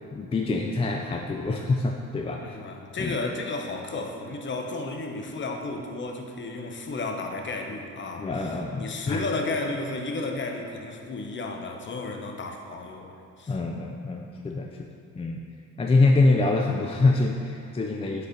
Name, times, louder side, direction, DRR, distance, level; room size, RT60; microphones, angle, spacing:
voice 1, 0.1-2.6 3.0-3.2 8.2-9.2 13.5-14.9 15.2-15.4 15.8-18.3, left 3 dB, 20° left, 1 dB, 0.4 m, -25 dB
voice 2, 2.4-13.6 17.9-18.2, left 3 dB, 40° left, 3 dB, 0.7 m, -33 dB
5.2 x 4.0 x 5.1 m, 2.5 s
cardioid pair, 90°, 30 cm